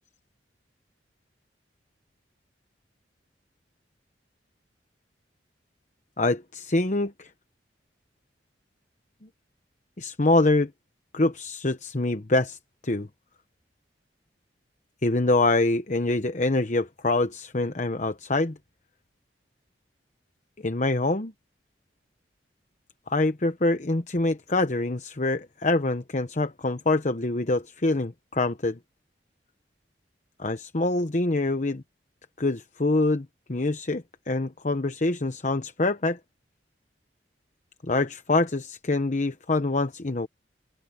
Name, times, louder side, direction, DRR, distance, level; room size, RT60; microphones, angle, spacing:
voice 1, 6.2-7.3 10.0-10.7 11.1-12.6 12.8-13.1 15.0-18.6 20.6-21.3 23.1-28.8 30.4-31.8 32.4-36.2 37.8-40.3, left 2 dB, 40° left, 1.0 m, -25 dB
open air
head